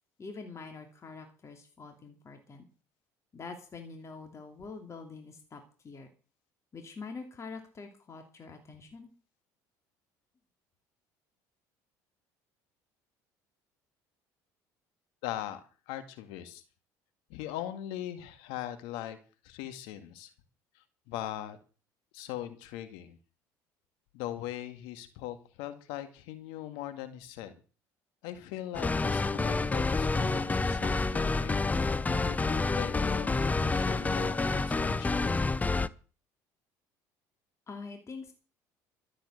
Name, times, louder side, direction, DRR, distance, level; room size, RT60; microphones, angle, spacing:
voice 1, 0.2-2.7 3.3-6.1 6.7-9.1 37.7-38.3, left 4 dB, 35° left, 4 dB, 2.7 m, -45 dB
voice 2, 15.2-15.6 15.9-16.6 17.3-19.2 19.4-20.3 20.8-21.6 22.1-23.2 24.1-27.6 28.2-31.8 32.1-35.4, left 12 dB, 80° left, 9 dB, 2.1 m, -40 dB
sound 1, 28.7-35.9, left 3 dB, 15° left, 0.7 m, -28 dB
13.5 x 7.8 x 7.9 m, 0.37 s
supercardioid pair, 80°, 9 cm